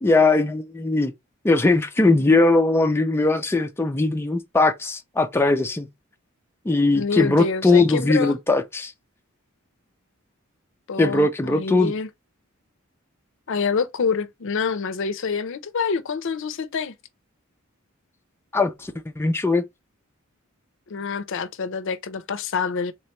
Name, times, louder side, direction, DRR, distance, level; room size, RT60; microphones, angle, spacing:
voice 1, 0.0-1.1 1.4-5.9 6.7-8.9 11.0-11.9 18.5-19.6, left 3 dB, 10° left, 0.4 m, -20 dB
voice 2, 6.9-8.3 10.9-12.1 13.5-16.9 20.9-22.9, left 5 dB, 65° left, 0.5 m, -26 dB
3.7 x 2.9 x 3.1 m
head